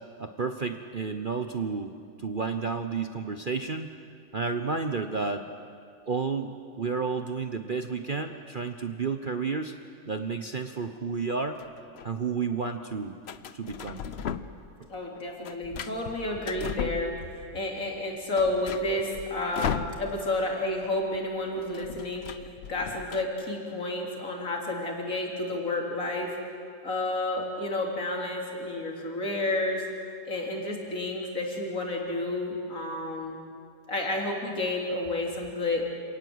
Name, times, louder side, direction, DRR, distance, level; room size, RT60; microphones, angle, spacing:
voice 1, 0.2-3.9 4.3-5.5 6.1-6.5 6.8-9.7 10.0-11.6 12.0-13.2 13.5-14.0, right 5 dB, 50° right, 7 dB, 0.6 m, -31 dB
sound 1, 11.3-12.1 13.2-14.7 15.0-17.5 17.9-18.0 18.2-20.4 20.7-20.9 21.1-23.2, left 7 dB, 75° left, 0.5 m, -37 dB
voice 2, 14.9-17.1 17.5-22.2 22.7-26.3 26.8-29.8 30.3-33.4 33.9-35.8, left 2 dB, 45° left, 0 dB, 3.7 m, -30 dB
27.5 x 18.0 x 8.0 m, 2.4 s
omnidirectional pair, 2.1 m